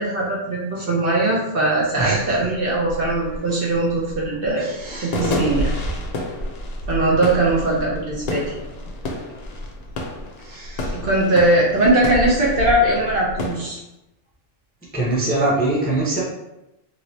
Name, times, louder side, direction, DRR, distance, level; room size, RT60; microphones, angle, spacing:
voice 1, 0.0-4.7 5.0-5.7 6.9-8.5 10.9-13.8, right 2 dB, 55° right, -4 dB, 0.8 m, -20 dB
sound 1, 1.7-1.8 2.2-13.7, left 1 dB, 70° left, 0.4 m, -29 dB
voice 2, 2.0-2.3 4.6-5.4 10.4-11.0 14.9-16.2, right 2 dB, 10° left, -6 dB, 0.5 m, -24 dB
3.1 x 2.8 x 2.8 m, 0.91 s
omnidirectional pair, 1.3 m